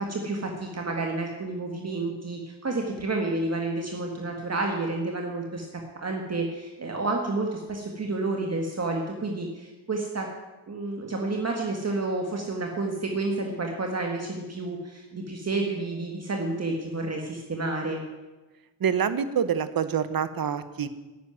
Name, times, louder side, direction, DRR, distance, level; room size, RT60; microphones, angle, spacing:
voice 1, 0.0-5.7 6.0-10.3 10.7-18.0, right 2 dB, 35° right, 2 dB, 1.7 m, -30 dB
voice 2, 18.8-20.9, right 7 dB, 50° right, 12 dB, 1.0 m, -26 dB
11.5 x 10.0 x 9.2 m, 1.2 s
wide cardioid pair, 150°, 45 cm